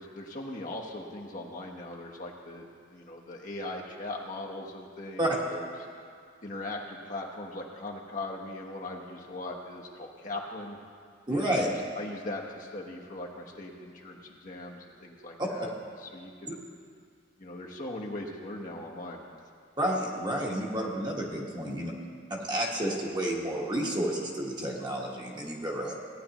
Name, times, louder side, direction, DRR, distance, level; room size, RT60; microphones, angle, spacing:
voice 1, 0.0-5.7 6.4-10.8 11.3-15.7 16.0-16.6 17.4-19.2 21.5-21.7, left 2 dB, 45° left, -1 dB, 1.1 m, -40 dB
voice 2, 11.3-11.7 19.8-21.9 22.3-25.9, right 1 dB, 25° right, -2 dB, 1.4 m, -30 dB
17.5 x 10.0 x 3.0 m, 2.2 s
head